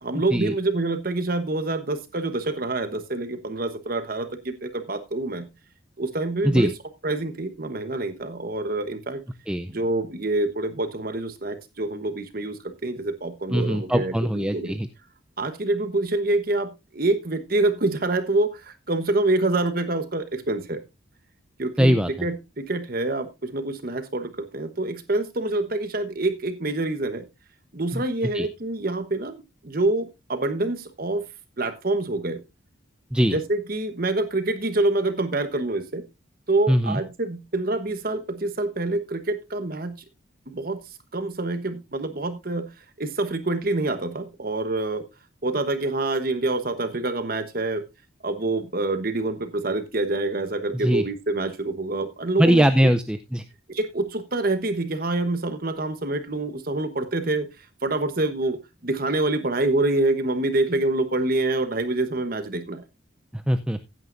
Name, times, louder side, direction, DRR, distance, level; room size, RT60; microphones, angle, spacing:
voice 1, 0.0-5.5 6.0-6.7 7.0-9.2 9.7-14.7 15.4-20.8 21.6-22.0 22.2-27.2 27.7-31.2 31.6-32.4 33.3-36.0 36.5-40.0 40.5-45.0 45.4-47.8 48.2-52.9 53.7-58.6 58.8-62.8, right 2 dB, 45° right, 9 dB, 1.1 m, -26 dB
voice 2, 13.5-14.9 21.8-22.1 27.9-28.0 28.3-28.5 33.1-33.3 36.7-37.0 50.7-51.0 52.4-53.4 63.3-63.8, equal, 5° right, 9 dB, 0.4 m, -21 dB
15.5 x 9.3 x 2.6 m, 0.24 s
head